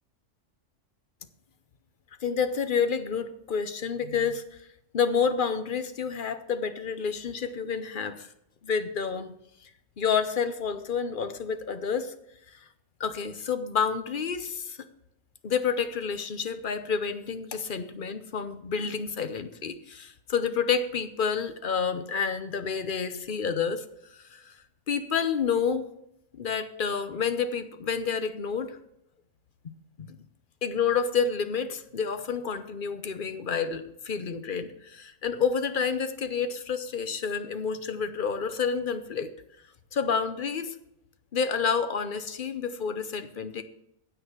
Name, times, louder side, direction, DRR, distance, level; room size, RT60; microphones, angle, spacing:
voice 1, 2.2-4.4 4.9-8.3 8.6-9.3 10.0-12.1 13.0-14.8 15.4-23.8 24.1-24.5 24.9-25.9 26.3-28.8 29.6-29.7 30.0-30.2 30.6-39.3 39.9-40.7 41.3-43.6, left 6 dB, 45° left, 11 dB, 0.9 m, -29 dB
9.7 x 8.2 x 5.7 m, 0.79 s
omnidirectional pair, 1.4 m